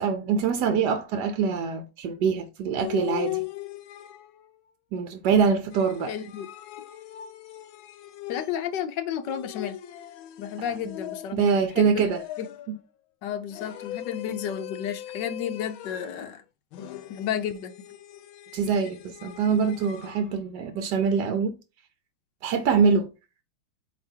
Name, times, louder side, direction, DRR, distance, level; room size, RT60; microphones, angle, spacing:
voice 1, 0.0-3.4 4.9-6.1 11.3-12.2 18.5-21.5 22.4-23.1, right 6 dB, 70° right, 1.1 m, -24 dB
sound 1, 2.8-4.5 5.7-8.8 9.2-11.6 12.1-12.8 13.5-16.3 16.7-20.2, left 14 dB, 85° left, 1.4 m, -39 dB
voice 2, 6.1-6.5 8.3-9.8 10.4-11.4 11.8-12.1 12.4-12.5 13.2-16.4 17.1-17.7, left 9 dB, 65° left, 1.3 m, -32 dB
8.2 x 2.9 x 4.4 m
omnidirectional pair, 2.2 m